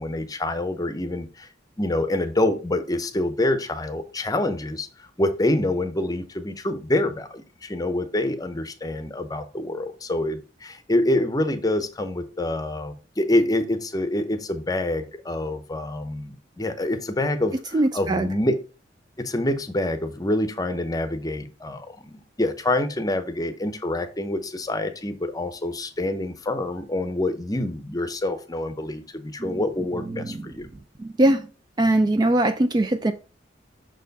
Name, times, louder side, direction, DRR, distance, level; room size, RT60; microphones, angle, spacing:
voice 1, 0.0-1.5 1.8-18.6 19.2-30.7, left 1 dB, 20° left, 10 dB, 0.7 m, -26 dB
voice 2, 17.7-18.3 29.5-29.6 30.2-30.3 31.0-31.4 31.8-33.1, right 1 dB, 20° right, 9 dB, 0.3 m, -21 dB
6.0 x 4.5 x 4.0 m, 0.34 s
head